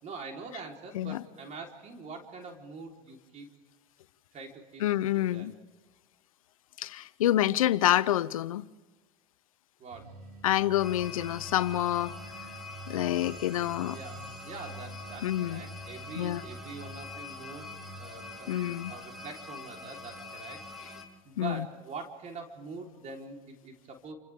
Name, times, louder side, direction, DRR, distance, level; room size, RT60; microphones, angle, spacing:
voice 1, 0.0-3.5 4.3-4.8 5.1-5.5 9.8-10.1 13.9-17.7 18.0-20.6 21.2-24.1, right 4 dB, 45° right, 4.3 m, -44 dB
voice 2, 4.8-5.5 6.8-8.7 10.4-12.2 12.9-14.0 15.2-15.6 16.1-16.4 18.5-18.9 21.4-21.7, left 13 dB, 90° left, 0.7 m, -27 dB
sound 1, 9.9-19.0, right 1 dB, 65° right, 7.4 m, -48 dB
sound 2, 10.8-21.0, left 3 dB, ahead, 4.1 m, -45 dB
29.5 x 26.0 x 3.7 m
hypercardioid pair, 90°, 17 cm